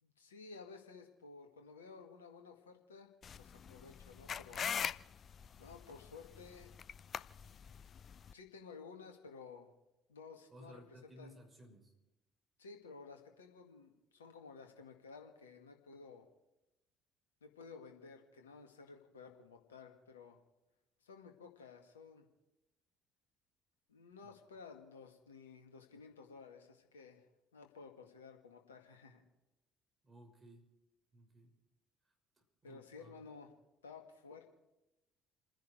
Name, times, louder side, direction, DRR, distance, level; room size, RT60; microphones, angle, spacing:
voice 1, 0.0-3.1 3.4-4.6 5.6-6.7 8.3-9.7 10.1-11.4 12.6-16.3 17.4-20.4 21.0-22.3 23.9-27.2 27.5-29.2 32.6-33.5 33.8-34.5, left 4 dB, 85° left, 4 dB, 1.9 m, -54 dB
sound 1, 3.2-8.3, left 7 dB, 45° left, 0.6 m, -43 dB
voice 2, 10.5-11.9 24.2-24.4 30.0-30.7 31.1-31.5 32.6-33.2, equal, 30° right, 2 dB, 5.8 m, -58 dB
29.5 x 10.5 x 4.7 m, 0.94 s
figure-of-eight pair, 50°, 0 cm